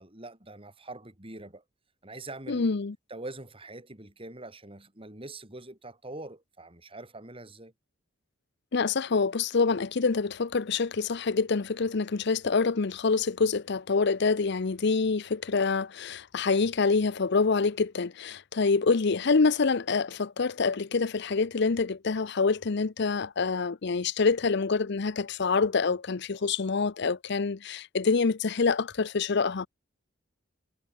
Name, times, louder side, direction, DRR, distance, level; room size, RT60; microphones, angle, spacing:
voice 1, 0.0-1.6 2.0-2.7 3.1-7.7, right 2 dB, 30° right, 4.9 m, -44 dB
voice 2, 2.5-2.9 8.7-29.7, left 4 dB, 60° left, 0.7 m, -26 dB
head